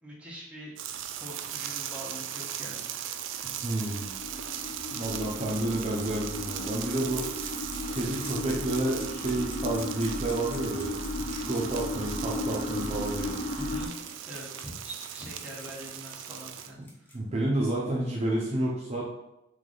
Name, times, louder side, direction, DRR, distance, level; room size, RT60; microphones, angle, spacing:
voice 1, 0.0-0.7 1.2-3.2 13.6-13.9 14.2-17.2, equal, 5° right, -6 dB, 1.1 m, -44 dB
sound 1, 0.8-16.7, right 10 dB, 75° right, 0.3 m, -38 dB
sound 2, 3.5-13.9, left 2 dB, 40° left, 1.3 m, -35 dB
voice 2, 3.6-4.1 4.9-7.3 7.9-10.9 11.3-13.3 17.1-19.0, right 1 dB, 35° right, -4 dB, 0.6 m, -30 dB
sound 3, 7.2-17.1, equal, 10° left, 0.8 m, -49 dB
3.4 x 3.2 x 3.8 m, 0.89 s
head